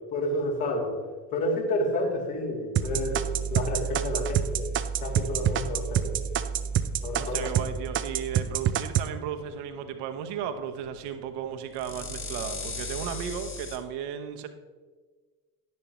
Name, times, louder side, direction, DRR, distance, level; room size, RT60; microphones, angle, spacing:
voice 1, 0.1-1.0 1.3-3.2 3.5-4.6 5.0-6.2 7.0-7.5, left 1 dB, 60° left, -3 dB, 2.9 m, -30 dB
sound 1, 2.8-13.8, right 3 dB, 25° left, 1.4 m, -36 dB
sound 2, 2.8-7.7 8.0-9.1, right 11 dB, 25° right, 0.5 m, -26 dB
voice 2, 7.2-14.5, right 8 dB, 55° right, 8 dB, 1.0 m, -35 dB
10.5 x 10.5 x 3.0 m, 1.4 s
figure-of-eight pair, 60°, 48 cm